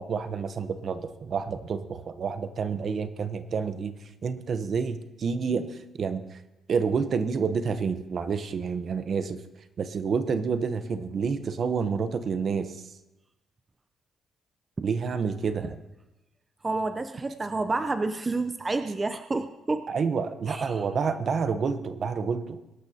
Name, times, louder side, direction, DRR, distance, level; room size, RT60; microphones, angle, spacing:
voice 1, 0.0-6.4 6.7-9.4 9.8-12.9 14.8-15.7 19.9-22.6, right 5 dB, 55° right, 11 dB, 0.9 m, -29 dB
voice 2, 16.6-19.9 20.5-20.8, right 3 dB, 25° right, 9 dB, 0.6 m, -29 dB
22.5 x 12.0 x 2.9 m, 0.97 s
cardioid pair, 90°, 0 cm